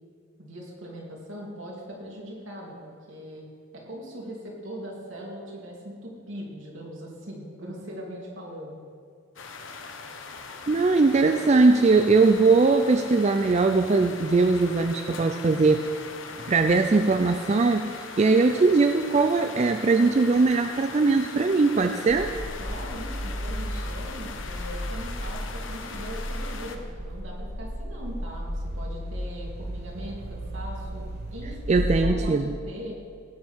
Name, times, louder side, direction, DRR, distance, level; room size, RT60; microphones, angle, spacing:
voice 1, 0.4-3.5 3.7-8.8 22.6-33.0, equal, 75° right, -2 dB, 2.9 m, -40 dB
sound 1, 9.4-26.8, left 4 dB, 70° left, 1.0 m, -40 dB
voice 2, 10.7-15.9 16.4-22.3 31.7-32.5, right 3 dB, 35° right, 7 dB, 0.4 m, -20 dB
sound 2, 22.1-32.2, equal, 50° right, 1.1 m, -34 dB
16.5 x 8.5 x 4.6 m, 2.2 s
head